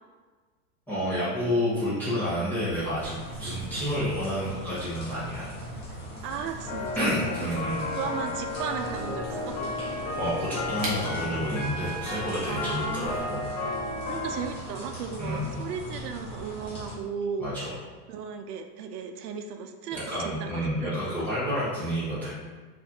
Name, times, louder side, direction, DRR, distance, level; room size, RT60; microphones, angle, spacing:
voice 1, 0.9-5.5 7.0-7.9 10.2-13.4 15.2-15.5 17.4-17.7 19.9-22.3, equal, 5° left, -13 dB, 0.5 m, -29 dB
sound 1, 2.6-13.2, right 2 dB, 40° right, 1.1 m, -46 dB
sound 2, 3.0-17.0, equal, 30° left, 1.3 m, -40 dB
voice 2, 6.2-7.1 7.4-7.6 8.0-9.5 12.5-13.2 14.1-17.5 18.1-20.0 20.2-21.1, right 6 dB, 85° right, 5 dB, 0.5 m, -35 dB
sound 3, 6.7-14.4, left 2 dB, 55° left, 1.1 m, -33 dB
4.4 x 2.5 x 2.7 m, 1.4 s
supercardioid pair, 155°, 45 cm